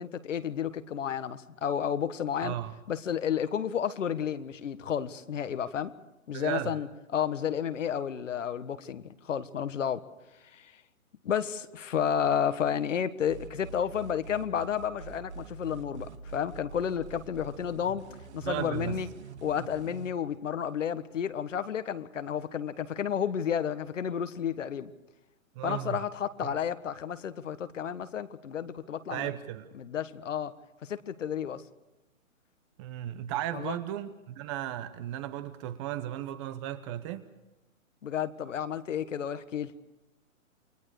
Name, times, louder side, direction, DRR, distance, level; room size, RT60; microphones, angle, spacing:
voice 1, 0.0-2.5 2.9-5.9 6.3-10.0 10.5-10.7 11.2-18.0 18.3-19.1 19.4-24.9 25.6-29.3 29.8-30.5 30.8-31.6 33.5-33.8 38.0-39.7, left 8 dB, 65° left, 1.6 m, -31 dB
voice 2, 2.4-2.8 6.3-6.8 18.4-19.0 25.5-26.0 26.4-26.6 29.1-29.7 32.8-37.3, right 12 dB, 20° right, 0.9 m, -35 dB
sound 1, 13.3-20.1, right 6 dB, 55° right, 2.7 m, -45 dB
29.0 x 23.0 x 4.9 m
hypercardioid pair, 145°, 40 cm